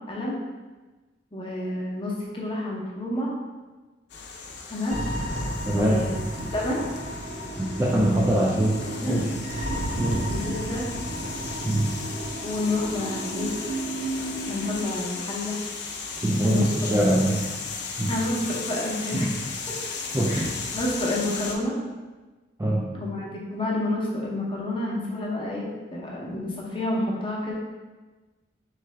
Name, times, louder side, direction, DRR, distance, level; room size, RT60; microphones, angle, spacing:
voice 1, 0.1-0.4 1.3-3.3 4.7-5.0 5.7-6.1 6.5-6.8 8.8-9.2 10.3-10.9 12.4-13.5 14.5-15.6 16.4-16.9 18.1-19.3 20.3-20.4 20.7-21.8 22.9-27.5, left 1 dB, 30° left, -4 dB, 0.7 m, -29 dB
sound 1, 4.1-21.5, left 4 dB, 60° left, 0.5 m, -36 dB
sound 2, 4.9-14.9, right 1 dB, 40° right, 0.7 m, -33 dB
voice 2, 5.6-6.1 7.6-8.8 9.0-9.3 10.0-10.2 11.6-11.9 16.2-17.4 18.0-18.1 19.0-19.4 20.1-20.6 22.6-22.9, right 1 dB, 15° right, -3 dB, 0.3 m, -23 dB
3.7 x 3.2 x 3.2 m, 1.2 s
head